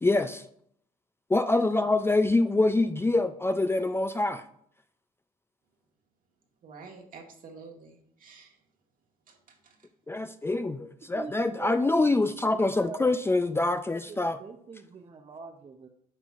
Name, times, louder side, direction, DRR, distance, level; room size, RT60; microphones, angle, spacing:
voice 1, 0.0-0.4 1.3-4.4 10.1-14.4, left 2 dB, 15° left, 9 dB, 0.4 m, -25 dB
voice 2, 6.6-8.6 9.3-9.8, right 4 dB, 60° right, 1 dB, 1.6 m, -49 dB
voice 3, 11.0-12.2 12.8-13.0 14.0-15.9, right 4 dB, 35° right, 3 dB, 0.7 m, -43 dB
8.7 x 5.6 x 2.5 m, 0.67 s
cardioid pair, 75°, 16 cm